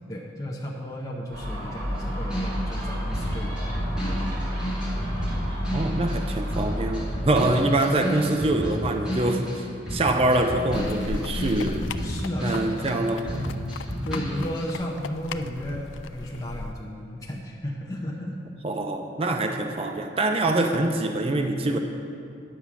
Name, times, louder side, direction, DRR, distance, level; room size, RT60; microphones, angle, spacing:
voice 1, 0.0-3.6 4.1-4.2 12.0-13.0 13.3-13.6 14.0-18.4, equal, 20° left, -3 dB, 0.7 m, -34 dB
Gull seagull, 1.3-7.2, equal, 50° right, 2.1 m, -30 dB
sound 1, 1.9-6.2 6.5-13.0 13.2-14.7, equal, 5° right, 2.6 m, -32 dB
voice 2, 5.7-9.7 9.9-11.9 12.4-13.6 18.6-21.8, right 2 dB, 30° right, 5 dB, 0.5 m, -24 dB
sound 2, 10.7-16.7, left 4 dB, 80° left, 0.4 m, -36 dB
10.0 x 7.1 x 6.1 m, 2.6 s
head